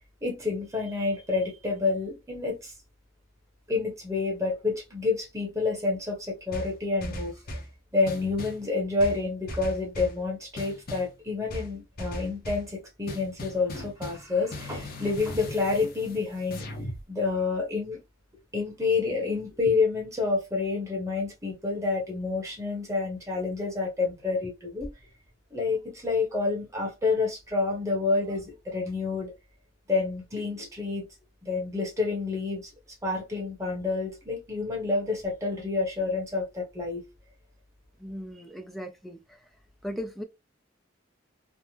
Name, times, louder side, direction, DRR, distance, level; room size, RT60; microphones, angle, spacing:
voice 1, 0.2-2.7 3.7-7.3 7.9-16.6 17.1-18.0 18.5-24.9 25.5-29.3 29.9-31.0 31.4-32.6 33.0-37.0, left 3 dB, 15° right, 1.1 m, -28 dB
sound 1, 6.5-7.7 8.1-8.6 9.0-10.2 10.6-11.1 11.5-12.7 13.1-17.0, left 1 dB, 50° left, 0.7 m, -38 dB
voice 2, 38.0-39.4 39.8-40.2, equal, ahead, 0.4 m, -37 dB
3.3 x 2.0 x 2.8 m
head